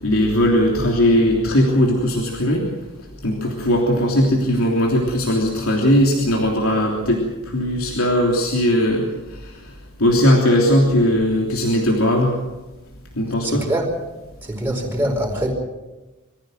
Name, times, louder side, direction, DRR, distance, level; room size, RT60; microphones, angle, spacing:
voice 1, 0.0-2.6 3.2-9.0 10.0-12.3 13.2-13.7, equal, 90° left, -1 dB, 3.3 m, -18 dB
voice 2, 13.4-13.9 14.4-15.5, right 1 dB, 10° right, -1 dB, 4.9 m, -23 dB
24.5 x 15.0 x 7.8 m, 1.1 s
head